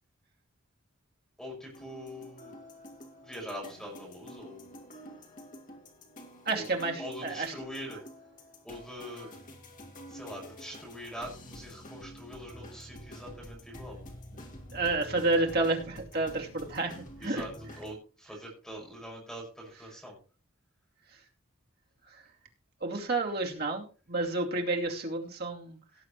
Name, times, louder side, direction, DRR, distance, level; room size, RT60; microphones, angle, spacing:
voice 1, 1.4-2.5 3.2-4.7 6.5-8.0 8.6-9.3 10.1-14.0 17.2-17.5 17.8-20.2, equal, 5° left, -2 dB, 5.8 m, -43 dB
sound 1, 1.7-18.0, equal, 40° left, 2.2 m, -48 dB
voice 2, 6.5-7.5 14.7-17.4 22.1-22.2 22.8-25.8, right 2 dB, 50° right, 1 dB, 2.6 m, -30 dB
17.5 x 7.7 x 3.2 m, 0.36 s
head